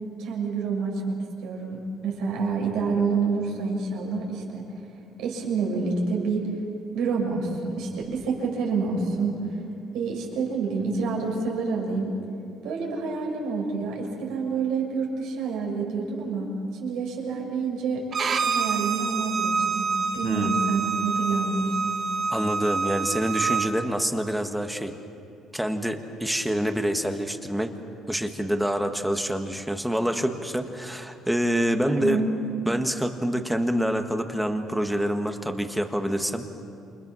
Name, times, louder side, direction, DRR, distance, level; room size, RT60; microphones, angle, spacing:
voice 1, 0.2-1.2 1.4-4.6 5.2-6.5 6.9-9.4 9.9-12.1 12.6-16.5 16.8-18.0 18.4-19.8 20.1-21.9 31.9-32.3, right 4 dB, 85° right, -1 dB, 6.6 m, -28 dB
Bowed string instrument, 18.1-23.7, right 5 dB, 40° right, 1.3 m, -27 dB
voice 2, 20.2-20.5 22.3-24.9 25.5-27.7 28.1-32.2 32.6-36.5, equal, 5° right, 5 dB, 1.5 m, -26 dB
29.0 x 27.0 x 6.3 m, 2.6 s
cardioid pair, 130°, 0 cm